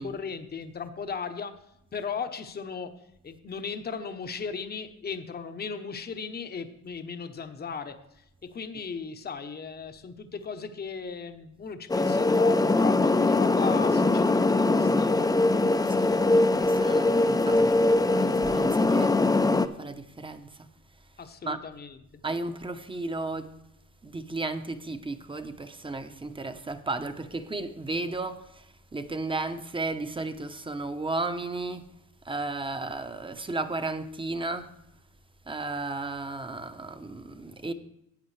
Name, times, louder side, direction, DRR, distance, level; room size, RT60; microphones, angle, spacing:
voice 1, 0.0-1.6 1.9-8.2 8.5-15.3 21.2-22.2, left 5 dB, 30° left, 0.9 m, -36 dB
sound 1, 11.9-19.7, left 2 dB, 10° left, 0.5 m, -22 dB
voice 2, 15.8-20.7 21.4-21.6 22.2-23.5 24.0-31.9 32.2-34.7 35.5-37.7, right 2 dB, 15° right, 0.9 m, -34 dB
13.5 x 8.5 x 3.3 m
cardioid pair, 90°, 30 cm